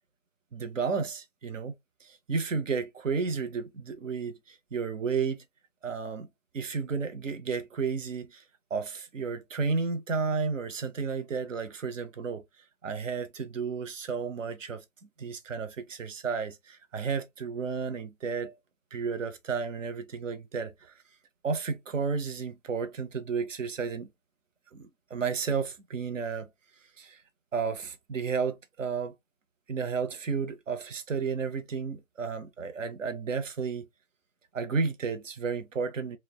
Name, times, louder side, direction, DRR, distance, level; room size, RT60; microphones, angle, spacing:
voice 1, 0.5-1.7 2.0-5.4 5.8-6.3 6.5-8.4 8.7-12.4 12.8-14.8 15.2-18.6 18.9-20.9 21.4-24.1 24.7-26.5 27.0-27.2 27.5-29.1 29.7-33.9 34.5-36.2, right 5 dB, 60° right, 0.7 m, -32 dB
3.3 x 2.1 x 2.2 m
figure-of-eight pair, 145°, 42 cm